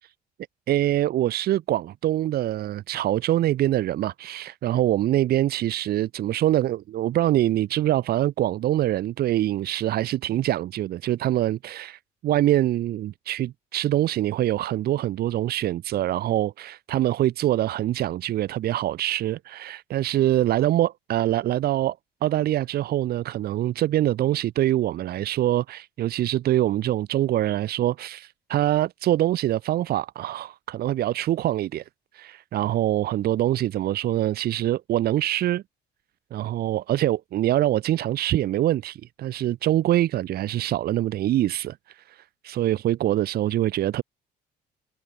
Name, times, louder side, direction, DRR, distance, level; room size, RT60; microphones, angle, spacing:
voice 1, 0.7-22.0 22.2-31.8 32.1-35.6 36.3-44.0, right 13 dB, 65° right, 2.4 m, -24 dB
cardioid pair, 110°, 17 cm